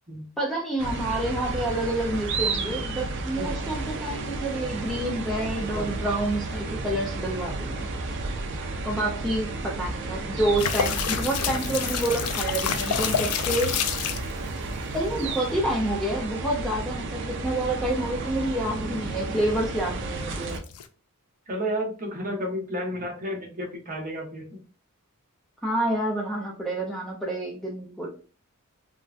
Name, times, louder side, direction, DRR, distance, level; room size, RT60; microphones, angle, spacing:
voice 1, 0.4-7.9 8.8-13.9 14.9-20.6 25.6-28.1, right 1 dB, ahead, -2 dB, 0.5 m, -28 dB
sound 1, 0.8-20.6, right 3 dB, 55° right, 0.4 m, -32 dB
sound 2, 10.6-14.3 20.3-20.9, left 8 dB, 80° left, 0.4 m, -28 dB
voice 2, 21.5-24.6, equal, 40° right, -1 dB, 0.9 m, -32 dB
3.4 x 2.1 x 2.4 m, 0.37 s
head